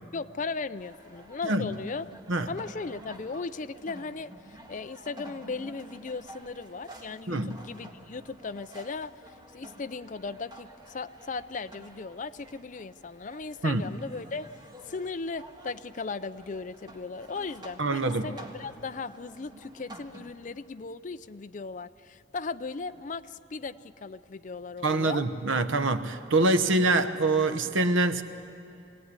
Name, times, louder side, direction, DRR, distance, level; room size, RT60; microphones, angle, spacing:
voice 1, 0.1-2.1 2.5-14.5 14.9-25.3, left 4 dB, 40° left, 11 dB, 0.5 m, -37 dB
sound 1, 0.8-20.3, right 1 dB, 20° right, 1.7 m, -50 dB
voice 2, 1.4-1.8 2.3-2.5 7.3-7.6 13.6-13.8 17.8-18.3 24.8-28.2, right 2 dB, 80° right, 10 dB, 1.0 m, -25 dB
23.0 x 17.5 x 9.7 m, 2.8 s
head